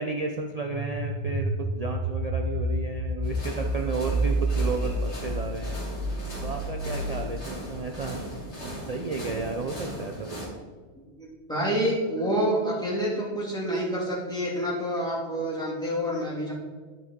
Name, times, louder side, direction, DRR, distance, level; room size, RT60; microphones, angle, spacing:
voice 1, 0.0-5.8 6.4-8.2 8.6-10.6, right 4 dB, 45° right, 3 dB, 0.5 m, -33 dB
sound 1, 0.5-9.2, right 1 dB, 65° left, 3.0 m, -30 dB
sound 2, 3.2-10.5, right 1 dB, 90° left, 2.8 m, -39 dB
voice 2, 11.2-16.5, equal, 5° left, -6 dB, 2.2 m, -28 dB
12.5 x 4.5 x 3.6 m, 1.5 s
omnidirectional pair, 1.1 m